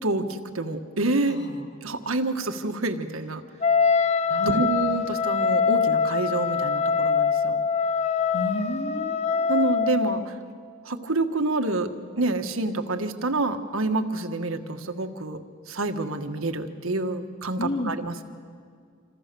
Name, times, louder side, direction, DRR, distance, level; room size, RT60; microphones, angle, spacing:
voice 1, 0.0-1.4 1.8-3.4 4.4-7.6 9.5-10.3 10.8-11.9 12.2-15.4 15.7-18.2, right 2 dB, 85° right, 6 dB, 1.5 m, -27 dB
voice 2, 1.3-1.6 4.3-4.7 8.3-9.7 17.6-17.9, left 1 dB, 55° left, 3 dB, 2.3 m, -32 dB
Wind instrument woodwind instrument, 3.6-10.2, left 5 dB, 30° left, 0.8 m, -23 dB
27.5 x 26.5 x 6.9 m, 2.1 s
head